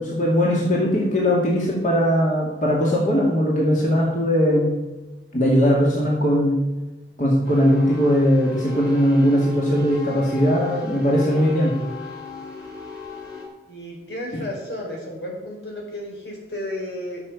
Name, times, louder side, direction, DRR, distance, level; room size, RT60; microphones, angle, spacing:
voice 1, 0.0-4.8 5.3-6.6 7.2-11.8 14.3-14.4, equal, 45° left, -3 dB, 2.4 m, -19 dB
sound 1, 7.4-13.5, left 4 dB, 20° left, 3.2 m, -36 dB
voice 2, 13.7-17.2, left 1 dB, 80° left, -1 dB, 4.5 m, -33 dB
13.5 x 6.9 x 7.2 m, 1.1 s
head